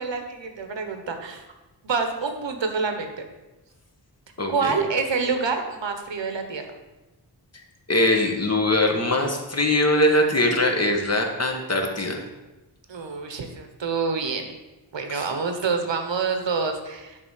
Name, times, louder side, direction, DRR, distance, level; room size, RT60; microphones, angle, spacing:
voice 1, 0.0-1.4 1.8-3.3 4.5-6.6 12.9-14.5 14.9-17.2, right 5 dB, 85° right, 5 dB, 1.1 m, -27 dB
voice 2, 4.4-4.8 7.9-12.2 15.1-15.3, left 1 dB, 35° left, 2 dB, 1.3 m, -22 dB
10.0 x 3.6 x 6.5 m, 1.1 s
wide cardioid pair, 110°, 44 cm